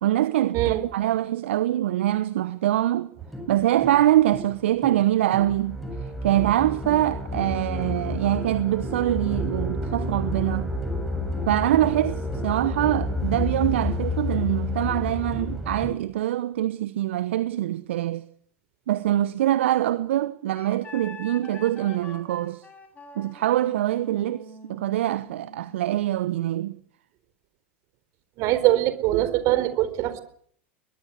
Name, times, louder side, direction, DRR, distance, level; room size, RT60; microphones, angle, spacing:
voice 1, 0.0-3.1 3.5-5.8 6.2-10.7 11.5-18.2 18.9-22.6 23.2-26.8, right 13 dB, 65° right, 1.1 m, -24 dB
sound 1, 3.2-15.9, left 1 dB, 5° left, 7.5 m, -30 dB
Wind instrument woodwind instrument, 20.5-25.9, left 3 dB, 20° left, 7.4 m, -45 dB
voice 2, 28.4-30.2, right 15 dB, 50° right, 4.1 m, -22 dB
22.5 x 21.5 x 8.5 m
figure-of-eight pair, 85°, 7 cm